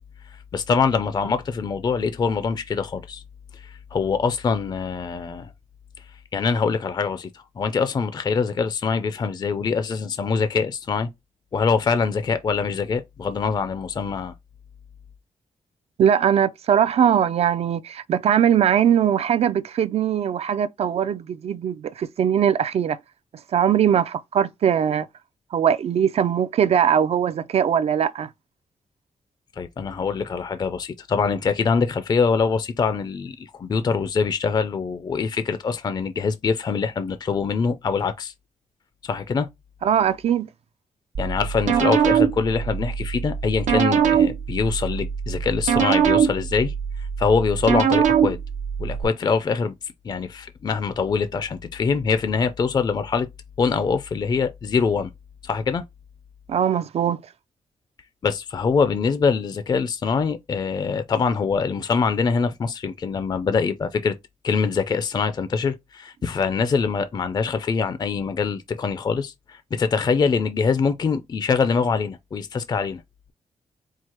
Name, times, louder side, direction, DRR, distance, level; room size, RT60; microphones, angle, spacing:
voice 1, 0.5-3.2 3.5-5.5 6.3-11.1 11.5-14.3 29.6-38.3 39.0-39.5 41.2-46.7 47.2-48.4 48.8-49.7 50.0-53.3 53.6-55.1 55.4-55.8 58.2-64.1 64.4-73.0, left 5 dB, 35° left, 0.4 m, -24 dB
voice 2, 16.0-23.0 23.5-25.1 25.5-28.3 39.8-40.5 56.5-57.2, right 9 dB, 60° right, 0.4 m, -21 dB
sound 1, 41.1-49.0, right 8 dB, 90° right, 0.7 m, -22 dB
4.6 x 2.0 x 4.3 m
wide cardioid pair, 145°, 12 cm